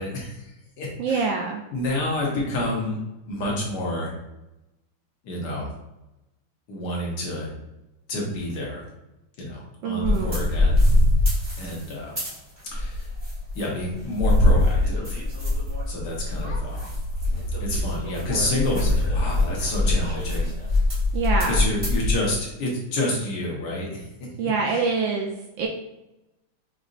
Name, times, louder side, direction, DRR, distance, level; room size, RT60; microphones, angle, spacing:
voice 1, 0.0-1.3 1.7-3.0 3.3-4.1 5.2-5.7 6.7-7.5 8.1-8.8 9.4-10.8 11.6-12.2 12.7-13.1 13.5-15.2 15.9-16.8 17.6-20.5 21.4-24.0 24.7-24.9, left 1 dB, 60° left, -3 dB, 1.5 m, -28 dB
voice 2, 1.0-1.6 9.8-10.4 21.1-21.6 24.4-25.7, right 4 dB, 75° right, 0 dB, 1.1 m, -25 dB
sound 1, 10.0-12.4 12.7-13.6 13.9-22.1, left 1 dB, 20° right, 0.8 m, -23 dB
5.1 x 2.6 x 2.5 m, 0.94 s
omnidirectional pair, 2.4 m